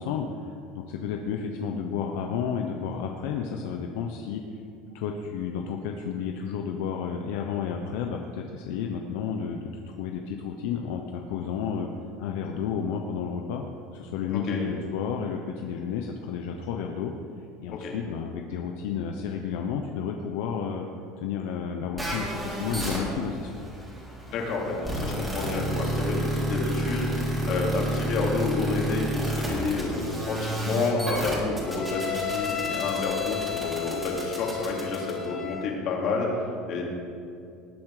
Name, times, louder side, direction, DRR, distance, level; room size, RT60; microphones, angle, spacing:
voice 1, 0.0-4.4 4.9-9.7 10.0-11.9 12.2-13.6 13.9-17.1 17.6-20.9 21.2-23.5, left 7 dB, 80° left, 3 dB, 0.9 m, -31 dB
sound 1, 22.0-35.6, left 1 dB, 10° right, 3.7 m, -30 dB
voice 2, 24.3-36.8, left 3 dB, 50° left, -1 dB, 2.9 m, -30 dB
19.5 x 7.3 x 5.0 m, 2.6 s
supercardioid pair, 130°, 0 cm